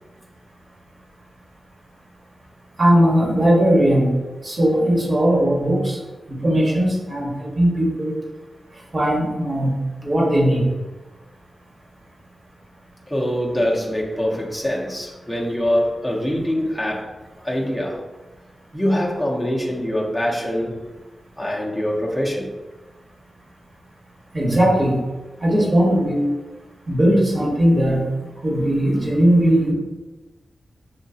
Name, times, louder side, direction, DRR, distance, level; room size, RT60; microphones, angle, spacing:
voice 1, 2.8-4.1 4.4-6.0 6.3-8.2 8.9-9.8 10.0-10.7 24.3-25.0 25.4-26.3 26.9-28.0 28.4-29.7, equal, 40° right, -2 dB, 1.3 m, -18 dB
voice 2, 13.1-17.1 17.4-18.1 18.7-20.9 21.4-22.6, equal, ahead, -3 dB, 0.7 m, -24 dB
6.2 x 2.9 x 2.8 m, 1.1 s
wide cardioid pair, 110°, 0 cm